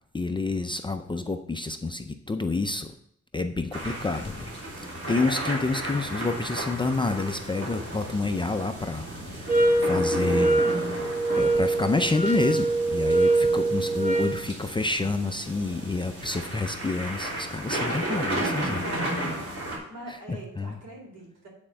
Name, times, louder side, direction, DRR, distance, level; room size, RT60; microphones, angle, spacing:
voice 1, 0.1-2.9 3.3-4.5 5.1-18.9 20.1-20.8, left 3 dB, 15° left, 6 dB, 0.4 m, -29 dB
sound 1, 3.7-19.8, right 1 dB, 50° right, 3.3 m, -34 dB
sound 2, 9.5-14.4, right 2 dB, 30° right, 1.0 m, -23 dB
voice 2, 18.4-21.5, right 1 dB, 75° right, -1 dB, 3.8 m, -45 dB
9.0 x 4.4 x 7.4 m, 0.69 s
wide cardioid pair, 160°, 30 cm